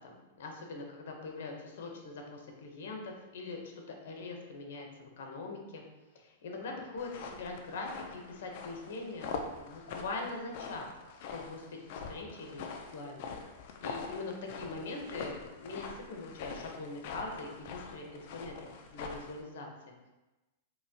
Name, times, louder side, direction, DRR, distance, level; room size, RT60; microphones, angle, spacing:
voice 1, 0.0-5.8 6.1-10.9 11.3-13.3 13.8-20.1, left 3 dB, 70° left, 2 dB, 0.8 m, -42 dB
sound 1, 7.0-19.4, left 5 dB, 50° left, 0.4 m, -44 dB
4.0 x 2.9 x 2.7 m, 1.1 s
supercardioid pair, 155°, 0 cm